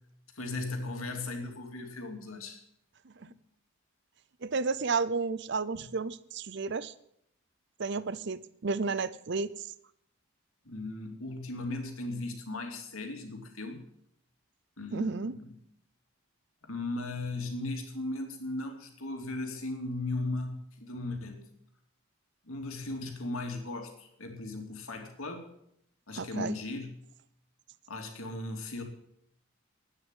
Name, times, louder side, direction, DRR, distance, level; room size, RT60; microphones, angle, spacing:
voice 1, 0.3-2.6 3.2-3.3 5.7-5.9 10.6-13.8 14.8-15.5 16.6-21.5 22.4-25.5 26.1-27.0 27.9-28.8, left 2 dB, 75° left, 3 dB, 2.7 m, -37 dB
voice 2, 4.4-6.9 7.8-9.7 14.9-15.3 26.2-26.6, right 4 dB, 55° right, 17 dB, 0.6 m, -32 dB
11.5 x 9.5 x 9.0 m, 0.73 s
head